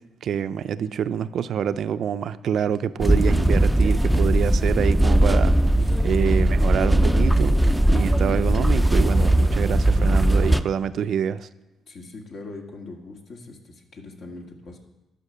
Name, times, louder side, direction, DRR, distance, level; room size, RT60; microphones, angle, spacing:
voice 1, 0.2-5.5 6.0-7.6 7.9-11.5, right 8 dB, 65° right, 14 dB, 0.4 m, -26 dB
sound 1, 3.0-10.6, right 1 dB, 5° right, 0.4 m, -19 dB
voice 2, 5.8-6.6 11.9-14.8, left 3 dB, 60° left, 2 dB, 1.9 m, -42 dB
11.0 x 5.7 x 6.8 m, 0.94 s
cardioid pair, 90°, 0 cm